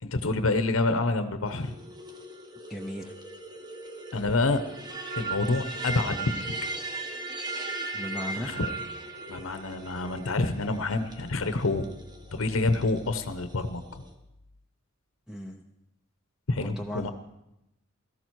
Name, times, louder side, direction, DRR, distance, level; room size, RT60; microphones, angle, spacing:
voice 1, 0.0-1.7 4.1-4.6 5.2-6.5 8.3-8.7 9.3-11.9 12.3-14.0 16.5-17.1, left 2 dB, 65° left, 10 dB, 0.9 m, -27 dB
sound 1, 1.5-14.1, right 3 dB, 20° right, 1.3 m, -38 dB
voice 2, 2.7-3.1 7.9-8.5 15.3-15.6 16.6-17.1, equal, 5° right, 3 dB, 0.7 m, -36 dB
sound 2, 4.9-7.2, right 3 dB, 45° right, 6.7 m, -53 dB
16.5 x 13.5 x 4.6 m, 0.86 s
head